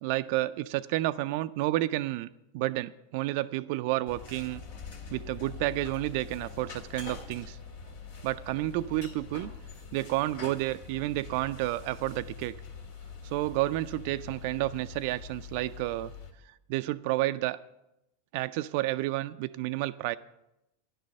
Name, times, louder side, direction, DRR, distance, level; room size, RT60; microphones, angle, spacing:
voice 1, 0.0-2.3 2.5-4.6 5.1-7.6 8.2-9.5 9.9-12.5 13.2-16.1 16.7-17.6 18.3-20.2, right 17 dB, 55° right, 13 dB, 0.4 m, -30 dB
sound 1, 4.1-16.3, left 5 dB, 65° left, 1.9 m, -44 dB
10.5 x 6.7 x 7.6 m, 0.86 s
hypercardioid pair, 95°, 0 cm